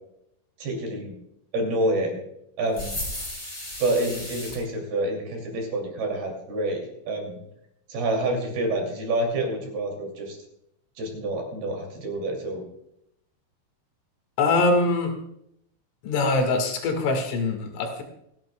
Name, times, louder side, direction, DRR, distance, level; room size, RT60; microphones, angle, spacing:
voice 1, 0.6-1.1 1.5-2.2 2.6-3.0 3.8-7.4 7.9-10.4 11.0-12.6, right 1 dB, 55° right, 1 dB, 4.1 m, -28 dB
sound 1, 2.7-4.6, left 1 dB, 20° left, 6.1 m, -34 dB
voice 2, 14.4-15.1 16.0-18.0, left 3 dB, 75° left, 4 dB, 4.3 m, -23 dB
28.0 x 10.5 x 2.2 m, 0.77 s
omnidirectional pair, 5.7 m